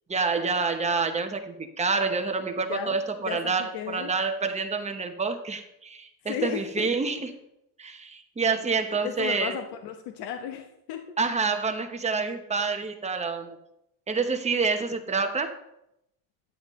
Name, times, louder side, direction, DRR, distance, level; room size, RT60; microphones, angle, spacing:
voice 1, 0.1-7.3 7.8-9.6 11.2-13.6 14.1-15.6, right 4 dB, 15° right, 6 dB, 0.9 m, -28 dB
voice 2, 3.2-4.1 6.2-6.9 9.0-11.0, left 9 dB, 80° left, 5 dB, 1.0 m, -34 dB
12.0 x 9.2 x 3.1 m, 0.83 s
cardioid pair, 145°, 41 cm